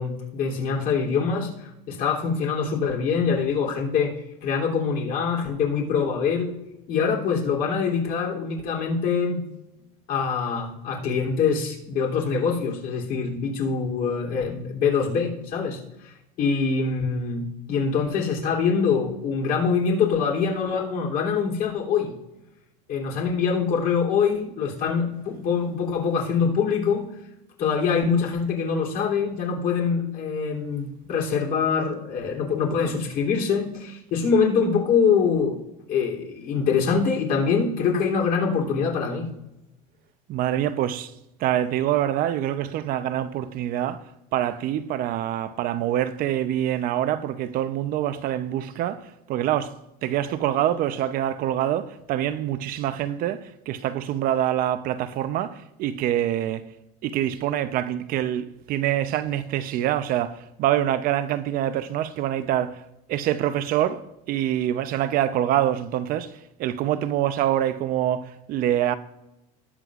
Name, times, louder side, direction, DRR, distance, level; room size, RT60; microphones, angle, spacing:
voice 1, 0.0-1.5 1.9-6.5 6.9-9.4 10.1-22.1 22.9-27.1 27.6-35.6 35.9-39.3, left 5 dB, 55° left, 3.2 m, -24 dB
voice 2, 40.3-41.1 41.4-44.0 44.3-49.7 50.0-56.7 57.0-62.8 63.1-68.9, right 11 dB, 50° right, 0.7 m, -25 dB
19.5 x 7.5 x 2.5 m
supercardioid pair, 125°, 18 cm